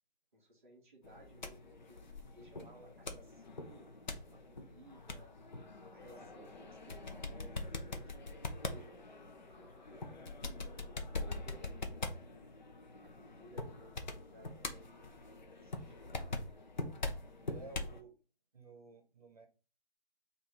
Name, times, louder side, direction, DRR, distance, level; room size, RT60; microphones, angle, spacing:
voice 1, 0.3-5.3 5.9-12.4 13.0-16.4, right 1 dB, 15° right, -8 dB, 0.7 m, -60 dB
sound 1, 1.0-18.0, left 3 dB, 45° left, 0.7 m, -43 dB
voice 2, 2.5-2.9 6.2-6.4 17.5-18.1 18.5-19.5, right 3 dB, 35° right, 4 dB, 0.9 m, -54 dB
3.5 x 2.6 x 4.4 m, 0.33 s
figure-of-eight pair, 160°, 32 cm